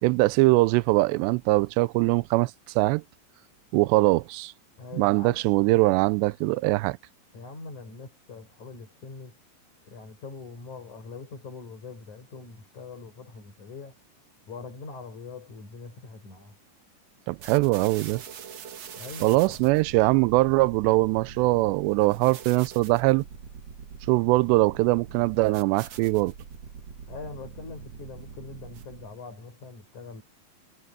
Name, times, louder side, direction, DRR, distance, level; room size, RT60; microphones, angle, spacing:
voice 1, 0.0-3.0 3.7-4.5 4.9-7.0 17.3-18.2 19.2-23.2 24.1-26.3, right 21 dB, 80° right, 2.6 m, -22 dB
voice 2, 4.8-5.5 7.3-9.4 9.9-14.0 14.5-16.6 19.0-19.6 27.1-30.2, left 4 dB, 40° left, 7.4 m, -42 dB
sound 1, 17.4-29.2, right 7 dB, 60° right, 1.7 m, -43 dB
omnidirectional pair, 5.2 m